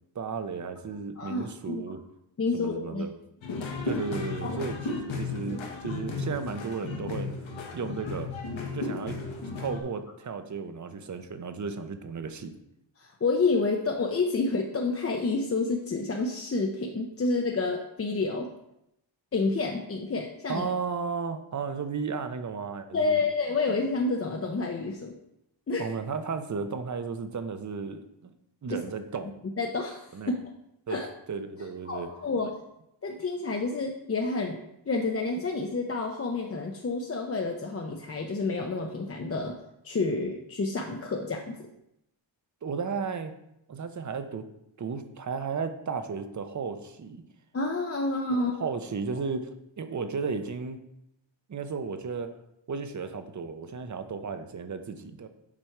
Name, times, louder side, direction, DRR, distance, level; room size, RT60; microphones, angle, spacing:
voice 1, 0.1-2.0 2.5-3.1 3.8-7.3 7.7-8.3 8.7-9.2 9.6-12.5 20.5-23.2 25.8-28.3 28.6-29.3 30.1-30.3 30.9-32.1 42.6-43.4 43.7-44.5 44.8-47.2 48.3-50.8 51.5-52.3 52.7-55.3, right 5 dB, 40° right, 9 dB, 0.7 m, -34 dB
voice 2, 1.2-1.8 2.4-3.0 4.4-4.6 13.0-18.5 19.3-20.7 22.9-25.1 25.7-25.9 28.7-28.8 29.6-30.1 30.9-31.1 31.9-32.5 33.0-34.6 34.9-39.6 39.8-41.7 47.5-48.5, left 3 dB, 30° left, 2 dB, 0.6 m, -29 dB
sound 1, 3.4-9.8, left 3 dB, 75° left, 1.3 m, -34 dB
7.4 x 5.1 x 4.5 m, 0.83 s
wide cardioid pair, 150°, 47 cm